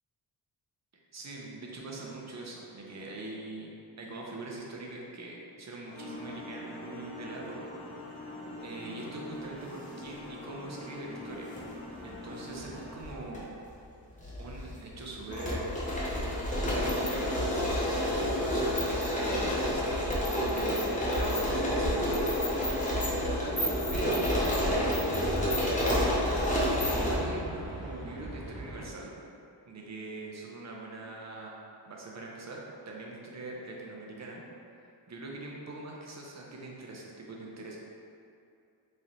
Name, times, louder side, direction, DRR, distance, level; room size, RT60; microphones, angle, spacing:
voice 1, 1.1-7.6 7.9-8.1 8.6-11.5 12.0-13.5 14.4-15.7 16.3-17.5 18.1-22.1 23.9-25.7 27.0-29.1 29.7-34.4 35.1-37.8, right 2 dB, 40° right, -2 dB, 0.7 m, -42 dB
sound 1, 5.9-13.0, left 1 dB, 80° left, 0.8 m, -43 dB
sound 2, 11.3-11.6 12.6-13.4 13.7-13.8 14.2-27.1, equal, 15° left, 0.8 m, -29 dB
sound 3, 23.4-28.9, right 1 dB, 10° right, 1.0 m, -39 dB
3.2 x 2.5 x 4.1 m, 2.5 s
wide cardioid pair, 105°, 43 cm